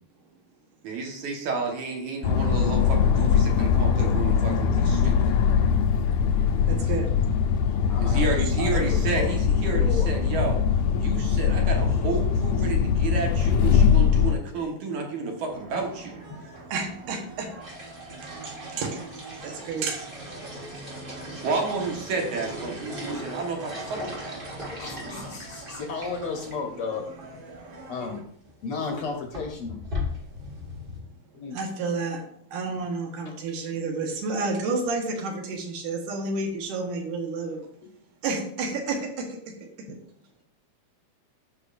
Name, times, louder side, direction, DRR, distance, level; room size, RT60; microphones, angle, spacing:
voice 1, 0.8-5.3 8.0-10.6 11.0-16.2 21.4-24.4, right 4 dB, 70° right, 1 dB, 2.7 m, -31 dB
sound 1, 2.2-14.3, left 7 dB, 90° left, 2.3 m, -22 dB
voice 2, 6.5-7.1 11.8-12.0 16.7-17.5 18.3-21.5 24.6-25.7 30.6-30.9 31.5-37.7 38.2-39.9, right 3 dB, 85° right, 3 dB, 2.8 m, -32 dB
voice 3, 7.9-9.4 9.7-10.4 14.5-14.6 15.0-15.4 16.3-16.5 19.5-19.6 20.7-20.8 22.6-22.7 24.8-27.1 27.9-28.2 28.6-29.8 31.3-31.6 37.8-37.9 39.9-40.0, left 4 dB, 65° left, 3 dB, 1.5 m, -34 dB
sound 2, 15.4-28.2, right 3 dB, 50° right, 1.4 m, -45 dB
sound 3, 17.6-26.6 26.9-27.0 27.2-27.3 28.3-28.5 28.9-31.0, left 1 dB, 35° right, 0.9 m, -38 dB
14.0 x 5.3 x 2.6 m, 0.65 s
omnidirectional pair, 3.5 m